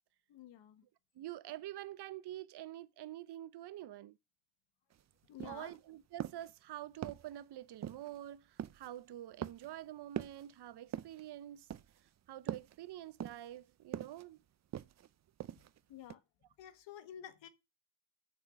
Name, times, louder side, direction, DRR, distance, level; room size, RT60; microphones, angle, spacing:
voice 1, 0.3-0.8 5.3-5.8 15.9-16.2 16.6-17.5, left 10 dB, 75° left, 1.4 m, -51 dB
voice 2, 1.1-4.2 5.4-11.7 12.3-14.4, right 13 dB, 60° right, 0.8 m, -47 dB
sound 1, 4.9-5.0 5.4-5.8 6.2-6.5 7.0-7.4 7.8-8.2 8.6-8.9 9.4-9.8 10.2-10.5 10.9-11.3 11.7-12.1 12.5-12.8 13.2-13.6 13.9-14.2 14.7-15.1 15.4-15.8 16.1-16.2, right 10 dB, 40° right, 0.5 m, -43 dB
8.4 x 6.7 x 6.2 m
cardioid pair, 85°, 45 cm